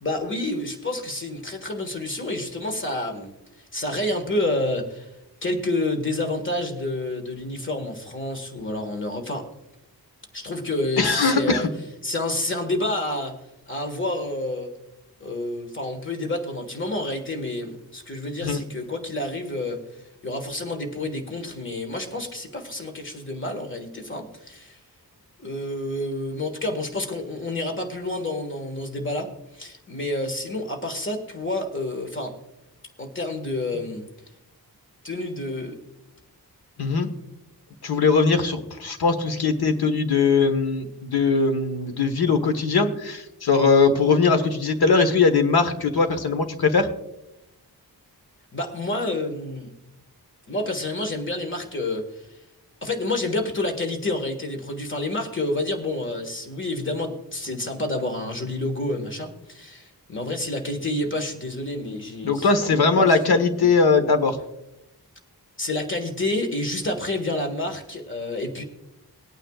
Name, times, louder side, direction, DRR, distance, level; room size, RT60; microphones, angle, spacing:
voice 1, 0.0-3.3 3.7-5.1 5.4-9.5 10.3-11.7 12.0-13.4 13.7-14.7 15.2-19.8 20.2-24.8 25.4-32.4 33.0-34.1 35.0-35.8 48.5-49.7 50.5-52.0 52.8-63.1 63.5-63.7 65.6-68.6, left 2 dB, 30° left, 5 dB, 1.7 m, -29 dB
voice 2, 11.0-11.7 18.4-18.6 36.8-37.1 37.8-46.9 62.2-64.4, left 4 dB, 75° left, 7 dB, 1.4 m, -20 dB
19.5 x 9.1 x 2.4 m, 0.90 s
wide cardioid pair, 120°, 38 cm